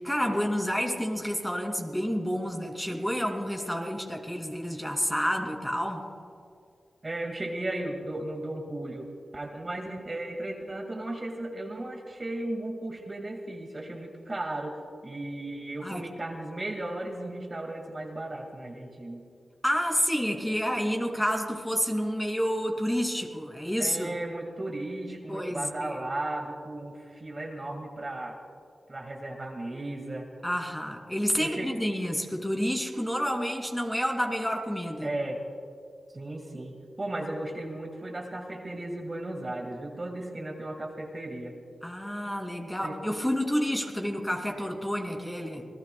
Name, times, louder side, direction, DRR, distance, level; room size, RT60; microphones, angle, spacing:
voice 1, 0.0-6.0 15.8-16.0 19.6-24.1 25.3-26.0 30.4-35.1 41.8-45.7, equal, 10° left, 2 dB, 2.8 m, -29 dB
voice 2, 7.0-9.1 9.3-19.2 23.8-28.4 28.9-30.3 31.4-31.7 35.0-35.4 36.1-41.6 42.8-43.0, right 1 dB, 35° right, 2 dB, 2.1 m, -35 dB
27.5 x 19.0 x 2.3 m, 2.3 s
cardioid pair, 60°, 0 cm